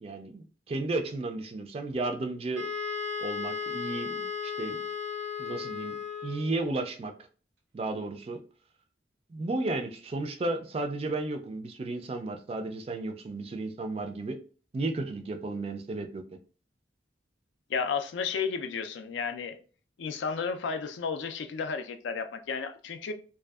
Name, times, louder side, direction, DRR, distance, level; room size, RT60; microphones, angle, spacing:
voice 1, 0.0-2.7 3.2-4.8 5.4-6.0 6.2-7.1 7.7-8.4 9.3-14.4 14.7-16.2, right 2 dB, 30° right, 0.3 m, -33 dB
Wind instrument woodwind instrument, 2.5-6.6, left 5 dB, 85° right, 0.6 m, -35 dB
voice 2, 17.7-19.6 20.0-23.1, left 5 dB, 85° left, 0.4 m, -32 dB
2.6 x 2.3 x 2.3 m
head